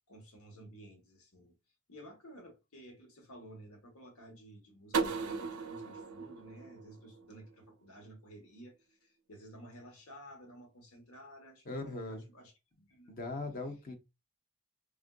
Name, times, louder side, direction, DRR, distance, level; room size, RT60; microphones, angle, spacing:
voice 1, 0.1-1.5 1.9-12.5 12.9-13.1, right 1 dB, 80° left, 1.1 m, -53 dB
sound 1, 4.9-7.7, right 5 dB, 85° right, 0.5 m, -37 dB
voice 2, 11.7-12.3 13.1-13.9, left 2 dB, 40° left, 0.7 m, -39 dB
3.5 x 2.5 x 2.2 m
head